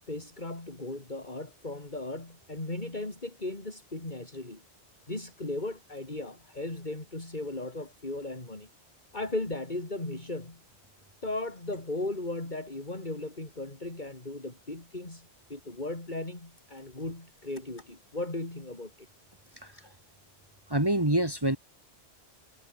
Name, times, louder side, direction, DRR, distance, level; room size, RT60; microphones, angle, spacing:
voice 1, 0.1-4.6 5.1-8.7 9.1-10.6 11.2-19.1 19.7-20.0, left 2 dB, 45° left, 4.1 m, -37 dB
voice 2, 20.7-21.6, right 1 dB, 20° right, 2.4 m, -26 dB
omnidirectional pair, 1.1 m